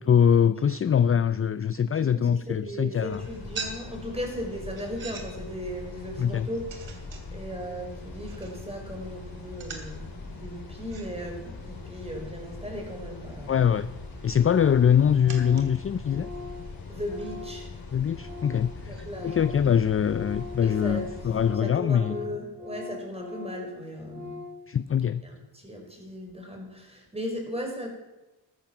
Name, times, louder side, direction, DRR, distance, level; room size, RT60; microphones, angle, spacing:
voice 1, 0.0-3.2 6.2-6.5 13.5-13.9 14.2-16.3 17.9-22.2 24.7-25.2, left 8 dB, 30° left, 14 dB, 0.4 m, -23 dB
voice 2, 2.1-6.7 7.3-13.6 16.9-17.7 18.9-19.4 20.6-21.0 21.5-24.4 25.2-27.9, equal, 10° right, 1 dB, 4.9 m, -37 dB
sound 1, 3.0-19.7, right 4 dB, 75° right, 2.8 m, -47 dB
sound 2, 3.1-21.5, left 3 dB, 45° left, 4.5 m, -42 dB
Organ, 14.1-14.2 14.5-14.9 15.1-18.7 19.0-24.7, left 3 dB, 75° left, 4.2 m, -42 dB
14.5 x 13.5 x 6.0 m, 1.1 s
cardioid pair, 100°, 47 cm